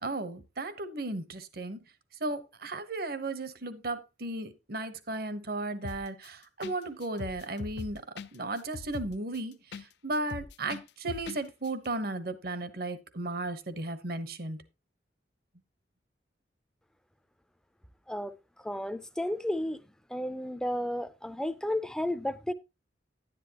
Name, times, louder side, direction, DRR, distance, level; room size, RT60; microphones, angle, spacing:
voice 1, 0.0-1.8 2.2-8.0 8.3-14.6, right 2 dB, 55° right, 1.1 m, -35 dB
sound 1, 5.8-6.3 6.6-6.8 7.0-9.9 10.1-11.4 11.6-11.7, left 4 dB, 65° left, 0.5 m, -41 dB
voice 2, 18.6-19.8 20.1-22.5, left 1 dB, 5° left, 0.6 m, -32 dB
11.0 x 10.0 x 2.9 m
head